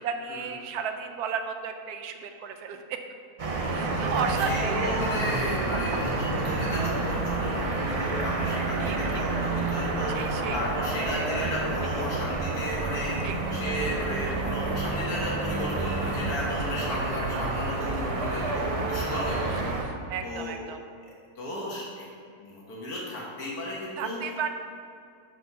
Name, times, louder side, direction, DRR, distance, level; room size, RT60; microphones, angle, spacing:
voice 1, 0.0-3.0 3.7-5.0 8.8-9.2 10.1-10.6 11.1-11.3 11.9-12.0 13.2-13.4 17.3-17.5 19.5-20.8 24.0-24.5, right 6 dB, 85° right, 6 dB, 1.1 m, -34 dB
sound 1, 3.4-19.8, right 3 dB, 50° right, 0.4 m, -29 dB
voice 2, 4.1-19.7 20.2-20.6 21.0-22.1 22.4-24.2, left 1 dB, 80° left, -5 dB, 1.8 m, -34 dB
6.2 x 5.2 x 5.5 m, 2.3 s
omnidirectional pair, 1.6 m